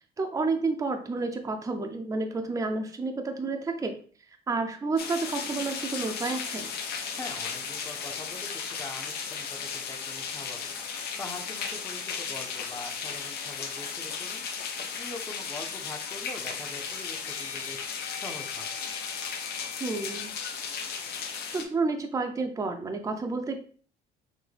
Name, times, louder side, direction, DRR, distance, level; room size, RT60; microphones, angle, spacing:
voice 1, 0.2-4.0 4.5-6.7 19.8-20.3 21.5-23.6, right 3 dB, 20° right, 4 dB, 0.6 m, -30 dB
sound 1, 5.0-21.6, left 6 dB, 70° left, 0.8 m, -35 dB
voice 2, 7.1-14.4 14.9-18.7, left 2 dB, 20° left, 4 dB, 0.8 m, -43 dB
sound 2, 12.0-14.7 15.0-15.2 16.3-16.4 17.2-20.6, left 10 dB, 90° left, 0.4 m, -45 dB
6.1 x 2.1 x 3.3 m, 0.43 s
cardioid pair, 110°, 17 cm